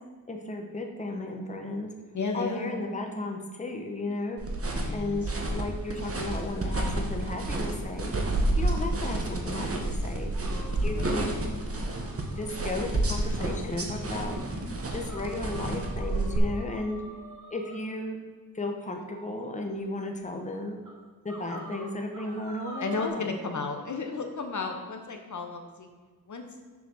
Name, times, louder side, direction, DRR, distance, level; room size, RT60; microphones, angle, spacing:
voice 1, 0.3-1.9 2.3-4.4 4.9-5.3 5.5-8.1 8.6-10.3 10.7-11.4 12.4-14.4 14.9-17.0 17.5-18.2 18.5-20.8 21.2-23.3, left 2 dB, 20° left, 3 dB, 0.9 m, -34 dB
voice 2, 2.1-2.8 4.8-5.7 10.9-11.2 22.8-25.9 26.3-26.4, left 4 dB, 50° left, 4 dB, 0.9 m, -34 dB
sound 1, 4.4-16.4, right 2 dB, 40° right, 1.2 m, -30 dB
sound 2, 10.3-13.3 13.7-13.8 14.3-14.5 15.1-17.8 18.8-19.4 20.1-20.2 20.8-20.9 21.3-23.1, right 3 dB, 55° right, 1.7 m, -46 dB
7.0 x 4.0 x 6.2 m, 1.5 s
wide cardioid pair, 100°, 36 cm